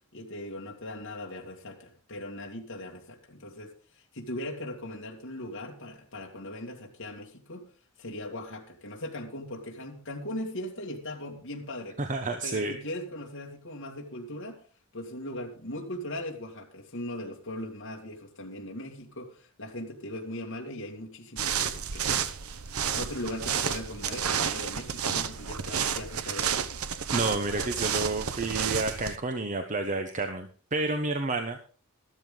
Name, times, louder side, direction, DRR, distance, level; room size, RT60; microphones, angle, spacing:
voice 1, 0.1-3.7 4.1-7.7 8.0-12.0 12.4-14.6 14.9-22.2 22.9-26.7, left 1 dB, 65° left, 0 dB, 2.2 m, -39 dB
voice 2, 12.0-12.7 27.1-31.6, right 2 dB, 35° right, 6 dB, 1.0 m, -30 dB
sound 1, 21.4-29.2, right 7 dB, 85° right, 0.9 m, -31 dB
13.5 x 12.5 x 3.9 m, 0.40 s
head